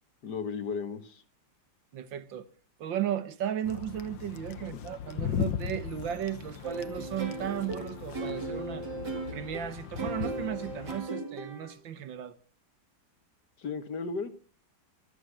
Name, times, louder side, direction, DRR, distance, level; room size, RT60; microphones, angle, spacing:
voice 1, 0.2-1.2 4.6-4.8 13.6-14.3, left 5 dB, 65° left, 2.1 m, -35 dB
voice 2, 1.9-2.5 2.8-8.9 9.3-12.3, right 10 dB, 90° right, 2.0 m, -35 dB
sound 1, 3.6-11.0, left 9 dB, 90° left, 1.7 m, -38 dB
sound 2, 6.6-11.7, right 2 dB, 65° right, 3.6 m, -37 dB
24.5 x 8.2 x 6.3 m
omnidirectional pair, 2.0 m